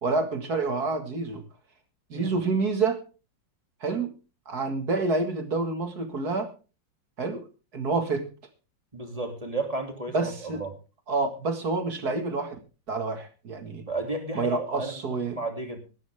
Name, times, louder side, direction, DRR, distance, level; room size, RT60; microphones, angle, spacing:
voice 1, 0.0-1.4 2.1-3.0 3.8-4.1 4.5-6.5 7.2-7.5 7.7-8.3 10.1-10.6 11.1-12.6 12.9-13.8 14.3-15.4, right 3 dB, 55° right, 7 dB, 2.4 m, -28 dB
voice 2, 8.9-10.7 13.9-14.9 15.3-15.8, right 2 dB, 20° right, 4 dB, 2.8 m, -33 dB
18.0 x 12.5 x 3.5 m, 0.33 s
omnidirectional pair, 2.1 m